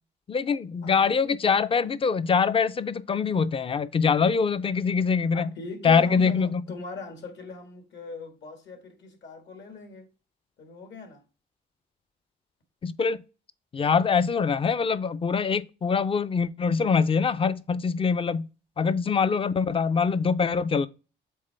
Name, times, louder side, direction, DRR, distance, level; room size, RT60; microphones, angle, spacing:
voice 1, 0.3-5.5 5.8-6.6 12.8-13.2 13.7-18.5 18.8-20.9, left 5 dB, 25° left, 0.5 m, -24 dB
voice 2, 5.3-10.1 10.6-11.2, left 3 dB, 65° left, 1.8 m, -39 dB
7.6 x 3.7 x 3.4 m
cardioid pair, 90°, 20 cm